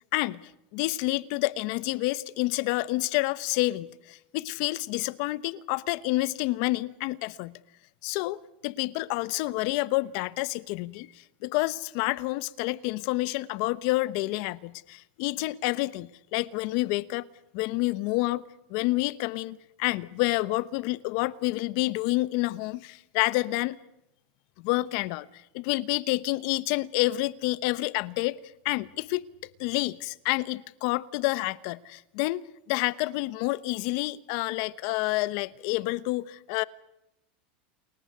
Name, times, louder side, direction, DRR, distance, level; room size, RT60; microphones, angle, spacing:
voice 1, 0.7-7.6 8.0-11.1 11.4-17.2 17.5-18.4 18.7-23.8 24.6-28.4 28.6-29.2 29.6-32.4 32.7-36.6, left 20 dB, 55° left, 1.0 m, -28 dB
29.0 x 14.5 x 9.4 m
supercardioid pair, 140°, 5 cm